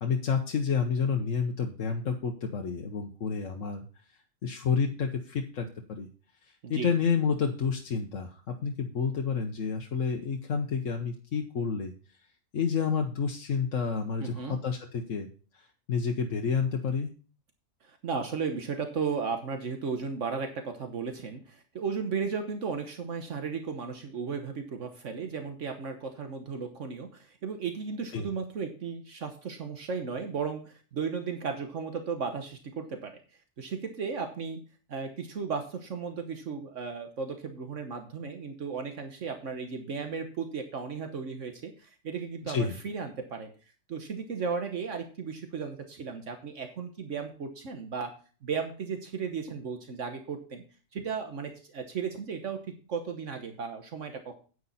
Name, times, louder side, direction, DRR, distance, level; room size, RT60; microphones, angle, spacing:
voice 1, 0.0-3.8 4.4-6.1 6.7-11.9 12.5-15.3 15.5-17.1 28.1-28.3 42.5-42.7, left 6 dB, 75° left, 2 dB, 1.4 m, -29 dB
voice 2, 14.2-14.6 17.8-33.2 33.6-34.6 34.9-43.5 43.9-48.1 48.4-50.6 50.9-52.6 52.9-54.3, right 5 dB, 70° right, 5 dB, 1.4 m, -35 dB
9.5 x 9.5 x 4.1 m, 0.38 s
omnidirectional pair, 1.3 m